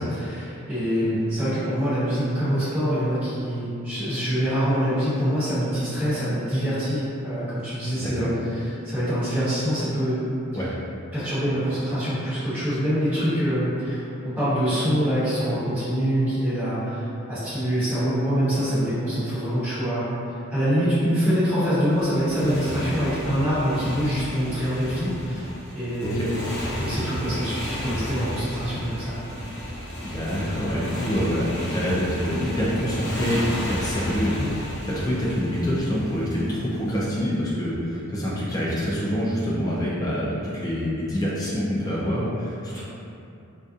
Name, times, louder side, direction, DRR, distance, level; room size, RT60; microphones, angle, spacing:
voice 1, 0.0-8.3 8.8-10.2 11.1-20.0 20.5-25.4 25.7-26.3 26.8-29.1 34.8-35.0 42.7-42.8, equal, 10° right, -17 dB, 1.1 m, -25 dB
Motorcycle, 21.9-37.1, equal, 90° left, 0.7 m, -33 dB
voice 2, 30.1-42.8, equal, 15° left, -7 dB, 0.3 m, -26 dB
2.6 x 2.2 x 2.4 m, 2.7 s
head